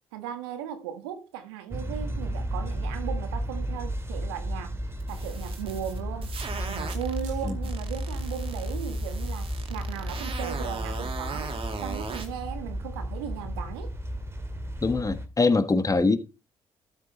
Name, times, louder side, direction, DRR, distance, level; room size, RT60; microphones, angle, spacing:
voice 1, 0.1-4.8 5.1-13.9, right 9 dB, 80° right, 1.5 m, -37 dB
sound 1, 1.7-15.3, equal, 20° right, 2.1 m, -33 dB
sound 2, 4.5-4.6 5.6-7.5, right 8 dB, 65° right, 2.0 m, -50 dB
sound 3, 5.0-7.2 7.6-12.3, right 5 dB, 45° right, 2.4 m, -38 dB
voice 2, 14.8-16.2, left 3 dB, 25° left, 1.4 m, -23 dB
13.0 x 5.9 x 4.2 m
hypercardioid pair, 45°, 13 cm